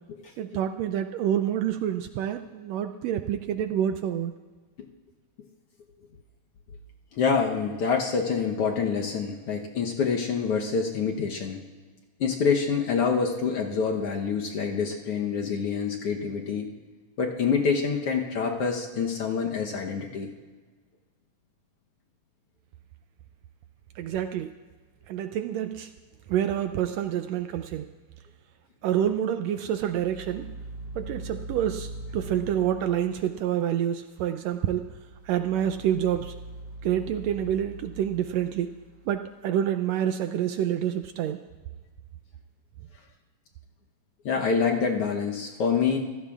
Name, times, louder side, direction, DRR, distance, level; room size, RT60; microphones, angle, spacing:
voice 1, 0.4-4.3 24.0-24.5 25.1-25.9 26.3-27.9 28.8-30.5 31.0-34.9 35.3-36.3 36.8-38.7 39.1-41.4, right 10 dB, 80° right, 8 dB, 1.6 m, -27 dB
voice 2, 7.1-11.6 12.2-16.7 17.2-20.3 44.2-46.0, left 5 dB, 65° left, 1 dB, 1.6 m, -26 dB
sound 1, 29.8-33.5 34.8-39.2, right 1 dB, 45° right, 1.6 m, -42 dB
26.0 x 15.5 x 2.4 m, 1.4 s
omnidirectional pair, 3.4 m